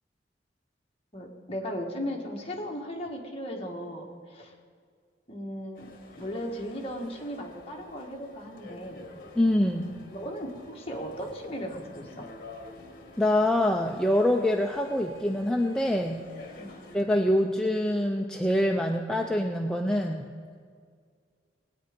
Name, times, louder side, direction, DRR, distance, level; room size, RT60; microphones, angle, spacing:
voice 1, 1.1-4.5 5.3-5.9 6.2-9.1 10.1-12.2 16.6-16.8, equal, 30° left, 0 dB, 1.6 m, -37 dB
sound 1, 5.7-17.0, left 2 dB, 50° left, 1.6 m, -49 dB
voice 2, 9.4-9.9 13.2-16.3 16.9-20.3, left 1 dB, 5° left, 1 dB, 0.5 m, -25 dB
19.5 x 9.0 x 5.1 m, 2.1 s
head